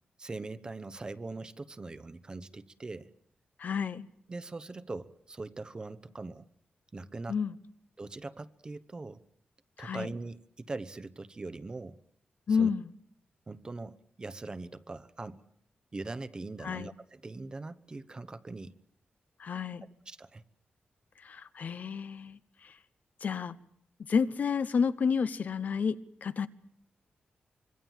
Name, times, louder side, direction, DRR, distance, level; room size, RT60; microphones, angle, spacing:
voice 1, 0.2-3.1 4.3-6.5 6.9-7.4 8.0-9.2 9.8-12.0 12.5-12.7 13.5-15.4 15.9-18.7 20.1-20.4, right 3 dB, 25° right, 13 dB, 1.0 m, -41 dB
voice 2, 3.6-4.1 7.3-7.5 9.8-10.1 12.5-12.9 16.6-16.9 19.4-19.9 21.2-22.7 23.2-23.6 24.1-26.5, left 6 dB, 55° left, 14 dB, 0.9 m, -30 dB
25.5 x 23.5 x 7.4 m, 0.70 s
wide cardioid pair, 145°, 3 cm